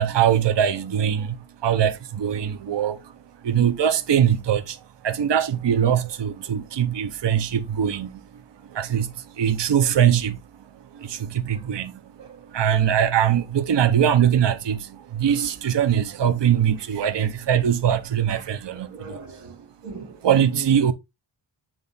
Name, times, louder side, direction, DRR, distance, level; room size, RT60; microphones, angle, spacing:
voice 1, 0.0-3.1 3.4-12.1 12.5-19.2 20.2-20.9, right 9 dB, 55° right, 0.7 m, -22 dB
voice 2, 18.3-20.9, right 4 dB, 90° right, 1.6 m, -41 dB
7.5 x 3.2 x 3.9 m
wide cardioid pair, 100°, 50 cm